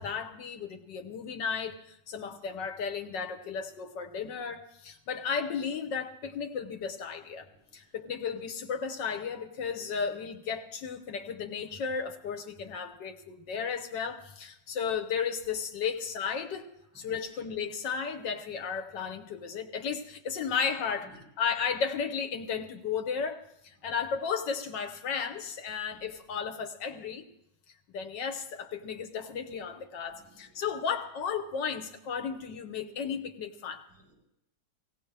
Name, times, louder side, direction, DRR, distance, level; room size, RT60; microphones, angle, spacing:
voice 1, 0.0-7.5 7.7-16.7 16.9-21.1 21.4-27.2 27.9-33.8, left 6 dB, 75° left, 5 dB, 1.7 m, -34 dB
voice 2, 7.4-7.9 16.9-17.4 20.4-20.5 21.0-21.2 23.8-23.9 25.8-26.0 30.0-30.7 32.3-32.4 32.9-33.0 33.9-34.1, right 1 dB, 15° right, -7 dB, 7.8 m, -59 dB
17.5 x 17.0 x 3.3 m, 0.80 s
omnidirectional pair, 2.0 m